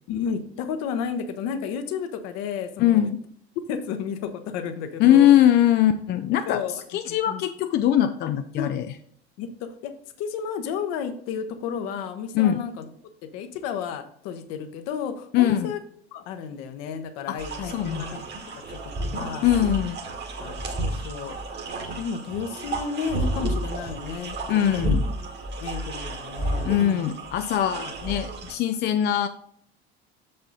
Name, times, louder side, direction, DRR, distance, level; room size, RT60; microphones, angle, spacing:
voice 1, 0.1-3.0 3.7-5.3 6.5-6.8 7.1-7.4 8.6-8.7 9.4-9.9 10.2-12.8 13.3-15.8 16.1-18.2 18.7-19.4 20.4-21.4 22.0-24.4 25.6-27.1, left 7 dB, 50° left, 9 dB, 0.9 m, -32 dB
voice 2, 2.8-3.2 5.0-6.6 6.9-8.9 12.3-12.6 15.3-15.7 17.3-17.4 17.6-18.2 19.4-20.0 24.5-25.0 26.7-29.3, left 11 dB, 35° left, 9 dB, 0.4 m, -21 dB
sound 1, 17.4-28.5, right 1 dB, 35° right, 1.4 m, -31 dB
6.7 x 5.4 x 3.9 m, 0.63 s
figure-of-eight pair, 65°, 32 cm